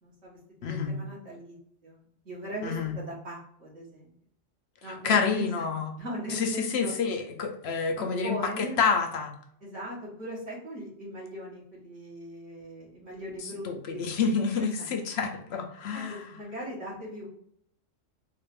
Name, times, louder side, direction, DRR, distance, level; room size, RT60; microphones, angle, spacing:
voice 1, 0.0-1.6 1.8-4.1 4.8-5.6 6.0-6.9 8.0-8.8 9.6-14.3 14.6-14.9 15.9-17.3, equal, 70° right, -6 dB, 1.7 m, -39 dB
voice 2, 0.6-1.0 2.6-2.9 5.0-5.9 6.3-9.3 13.6-16.3, left 5 dB, 65° left, 3 dB, 0.8 m, -28 dB
3.8 x 2.5 x 3.3 m, 0.68 s
omnidirectional pair, 1.3 m